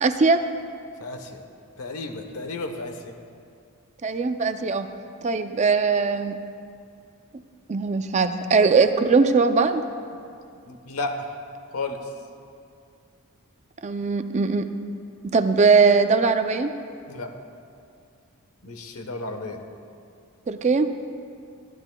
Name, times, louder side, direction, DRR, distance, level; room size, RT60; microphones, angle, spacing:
voice 1, 0.0-0.4 4.0-4.9 5.2-6.4 7.7-9.8 13.8-14.7 15.2-16.7 20.5-20.9, right 4 dB, 30° right, 9 dB, 0.4 m, -20 dB
voice 2, 1.0-1.4 1.8-3.1 10.6-11.3 11.7-12.0 17.1-17.4 18.6-19.6, left 2 dB, 75° left, 5 dB, 1.1 m, -33 dB
24.5 x 11.0 x 2.3 m, 2.4 s
head